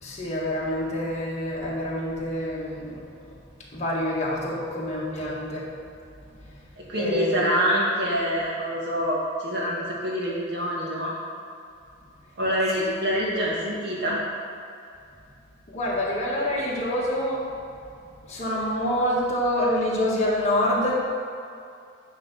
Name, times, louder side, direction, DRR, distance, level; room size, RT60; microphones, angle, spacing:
voice 1, 0.0-3.0 3.7-5.7 7.0-7.4 12.8-12.9 15.7-17.5 18.3-21.0, left 1 dB, 35° left, -6 dB, 1.8 m, -26 dB
voice 2, 6.8-11.2 12.4-14.2, equal, 60° right, -4 dB, 1.9 m, -26 dB
9.5 x 3.8 x 6.4 m, 2.5 s
head